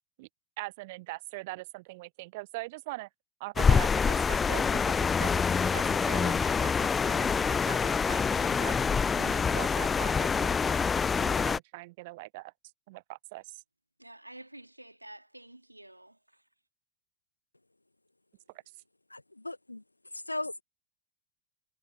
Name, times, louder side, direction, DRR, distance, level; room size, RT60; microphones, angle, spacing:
voice 1, 0.6-3.1 3.4-8.8 9.1-12.5 12.9-13.6 18.5-18.6, right 22 dB, 50° right, 0.5 m, -42 dB
sound 1, 3.6-11.6, left 5 dB, 15° left, 0.3 m, -26 dB
voice 2, 14.0-16.4, right 1 dB, 85° right, 2.2 m, -50 dB
voice 3, 19.1-19.8 20.1-20.6, left 2 dB, 85° left, 1.0 m, -37 dB
figure-of-eight pair, 90°, 0 cm